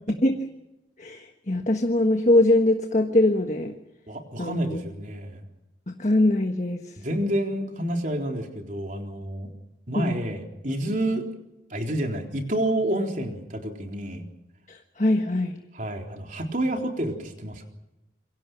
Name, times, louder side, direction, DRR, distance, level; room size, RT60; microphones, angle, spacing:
voice 1, 1.0-3.7 4.4-4.8 5.9-6.8 9.9-10.1 14.7-15.6, left 1 dB, 40° left, 5 dB, 1.4 m, -22 dB
voice 2, 4.1-5.4 7.0-9.5 9.9-11.2 11.7-14.3 15.7-17.7, right 1 dB, 45° right, 3 dB, 3.8 m, -29 dB
27.5 x 24.0 x 6.1 m, 0.93 s
head